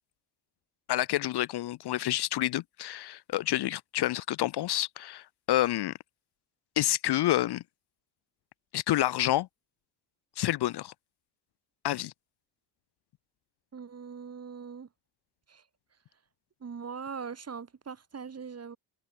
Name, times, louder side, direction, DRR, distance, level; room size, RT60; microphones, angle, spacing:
voice 1, 0.9-5.9 6.8-7.6 8.7-9.5 10.4-10.9 11.8-12.1, left 14 dB, 60° left, 0.7 m, -28 dB
voice 2, 13.7-14.9 15.5-15.6 16.6-18.8, right 6 dB, 35° right, 5.0 m, -41 dB
cardioid pair, 140°, 45 cm